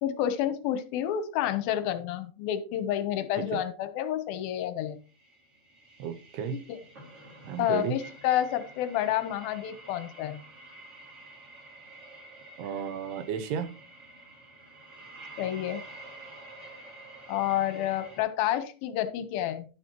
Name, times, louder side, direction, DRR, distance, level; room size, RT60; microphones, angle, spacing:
voice 1, 0.0-5.0 6.5-6.8 7.6-10.4 15.4-15.8 17.3-19.7, left 11 dB, 75° left, 11 dB, 2.3 m, -29 dB
sound 1, 5.0-18.2, right 2 dB, 50° right, 0.8 m, -49 dB
voice 2, 6.0-6.6 7.4-7.9 12.6-13.7, right 8 dB, 80° right, 11 dB, 2.6 m, -33 dB
11.5 x 8.2 x 3.0 m, 0.35 s
omnidirectional pair, 5.0 m